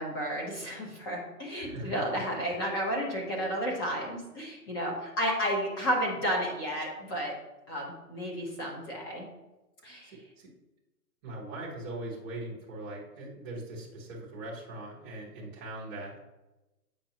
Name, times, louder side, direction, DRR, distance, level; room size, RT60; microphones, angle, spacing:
voice 1, 0.0-7.3 7.7-9.2 9.8-10.1, equal, 15° left, -2 dB, 0.9 m, -32 dB
voice 2, 1.5-2.6 10.0-10.5 11.2-16.2, right 2 dB, 10° right, -7 dB, 0.9 m, -41 dB
8.4 x 6.1 x 2.8 m, 1.0 s
hypercardioid pair, 170°, 47 cm